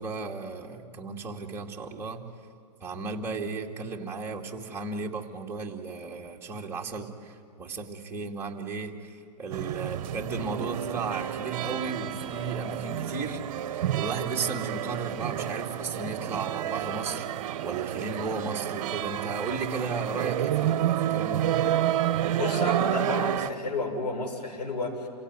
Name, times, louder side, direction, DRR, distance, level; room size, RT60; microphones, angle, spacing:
voice 1, 0.0-2.3 2.8-13.4 13.7-17.3 17.6-21.5, right 4 dB, 10° right, -2 dB, 2.4 m, -34 dB
sound 1, 9.5-23.5, right 11 dB, 55° right, 1.0 m, -30 dB
voice 2, 22.4-25.1, left 2 dB, 80° left, 1 dB, 7.0 m, -31 dB
28.0 x 17.0 x 9.8 m, 2.6 s
hypercardioid pair, 145°, 21 cm